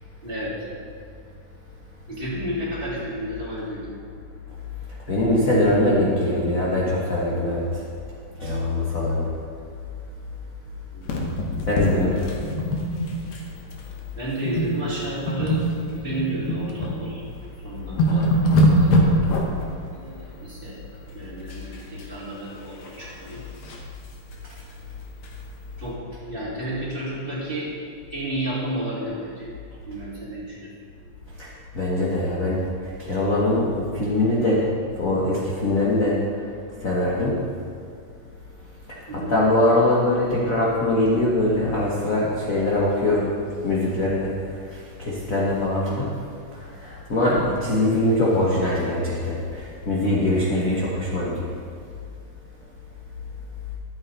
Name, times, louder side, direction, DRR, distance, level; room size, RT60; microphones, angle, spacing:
voice 1, 0.2-0.5 2.1-3.9 10.9-11.3 14.1-15.6 15.9-17.2 17.6-18.2 18.7-18.9 19.9-20.8 21.1-23.4 25.8-26.0 26.3-27.7 28.1-29.5 29.9-30.7 39.1-39.3 47.1-47.5, right 1 dB, 15° right, -9 dB, 3.1 m, -31 dB
voice 2, 5.1-7.6 8.4-9.3 11.7-12.2 31.4-31.5 31.7-32.6 33.0-34.6 35.0-36.1 36.8-37.4 38.9-39.0 39.3-43.3 43.6-44.3 44.7-46.1 46.8-51.5, left 1 dB, 45° left, -6 dB, 1.0 m, -22 dB
sound 1, 11.0-13.5 13.7-13.9 14.4-14.8 15.1-17.0 17.4-17.5 17.8-19.7 21.5-22.0 22.4-23.9 24.3-24.4 24.7-24.8 25.2-25.3, equal, 65° left, 2.3 m, -23 dB
12.5 x 8.8 x 4.2 m, 2.3 s
omnidirectional pair, 3.6 m